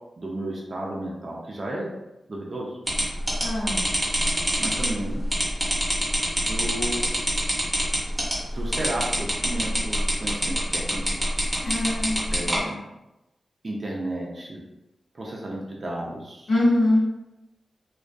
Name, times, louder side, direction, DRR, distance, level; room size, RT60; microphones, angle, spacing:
voice 1, 0.2-1.9 2.3-2.8 4.6-5.2 6.5-7.0 8.5-11.2 12.3-12.9 13.6-14.6 15.1-16.5, right 1 dB, 40° right, -3 dB, 0.4 m, -33 dB
sound 1, 2.9-12.6, equal, 5° right, 0.8 m, -25 dB
voice 2, 3.4-3.8 11.6-12.8 16.5-17.0, left 1 dB, 80° left, -5 dB, 0.8 m, -23 dB
2.2 x 2.2 x 2.5 m, 0.95 s
wide cardioid pair, 110°, 0 cm